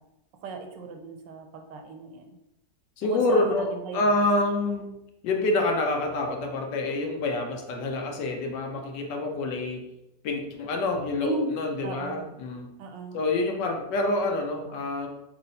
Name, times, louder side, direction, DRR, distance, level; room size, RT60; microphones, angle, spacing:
voice 1, 0.4-2.3 3.0-4.2 11.2-11.5 11.8-12.3 12.8-13.2, right 3 dB, 90° right, 4 dB, 1.3 m, -36 dB
voice 2, 3.0-3.7 3.9-5.0 5.2-9.8 10.2-12.7 13.1-15.1, left 2 dB, 80° left, 3 dB, 1.3 m, -27 dB
3.2 x 3.1 x 4.0 m, 0.90 s
omnidirectional pair, 1.9 m